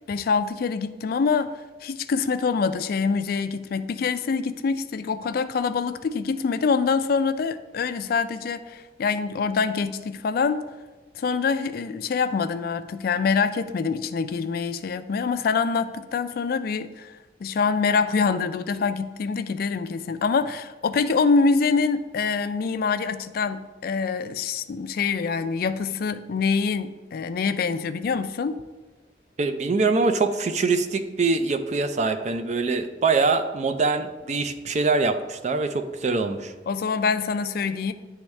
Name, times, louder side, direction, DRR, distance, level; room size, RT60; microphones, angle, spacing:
voice 1, 0.1-1.5 1.8-10.6 11.2-17.1 17.4-28.6 36.7-37.9, left 5 dB, 55° left, 11 dB, 0.3 m, -25 dB
voice 2, 29.4-36.5, right 3 dB, 40° right, 9 dB, 0.4 m, -24 dB
9.8 x 3.5 x 3.2 m, 1.2 s
head